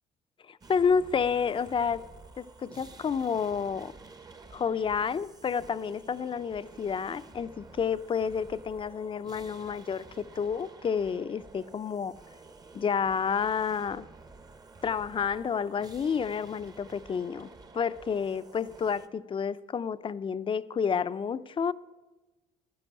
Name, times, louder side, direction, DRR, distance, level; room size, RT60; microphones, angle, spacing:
voice 1, 0.5-2.0 2.4-3.9 4.5-12.1 12.7-14.1 14.8-21.7, left 6 dB, 30° left, 0.5 m, -30 dB
sound 1, 0.6-19.1, right 3 dB, 25° right, 0.8 m, -51 dB
11.5 x 10.5 x 8.6 m
cardioid pair, 105°, 16 cm